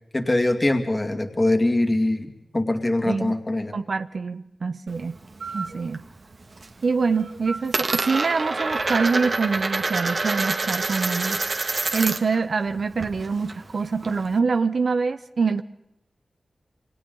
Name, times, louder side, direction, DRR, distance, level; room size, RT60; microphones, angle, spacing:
voice 1, 0.1-3.7, left 1 dB, 25° left, 5 dB, 2.3 m, -23 dB
voice 2, 3.7-5.2 5.5-6.0 6.8-15.6, right 4 dB, 65° right, 10 dB, 0.8 m, -25 dB
Coin (dropping), 4.9-6.0 6.3-6.8 7.1-12.4 12.7-14.4, right 3 dB, 50° right, 1.9 m, -27 dB
sound 1, 5.4-5.8 7.1-7.6 7.9-8.6 8.9-10.3, right 4 dB, 90° right, 1.8 m, -35 dB
29.0 x 26.0 x 4.0 m, 0.86 s
wide cardioid pair, 110°, 0 cm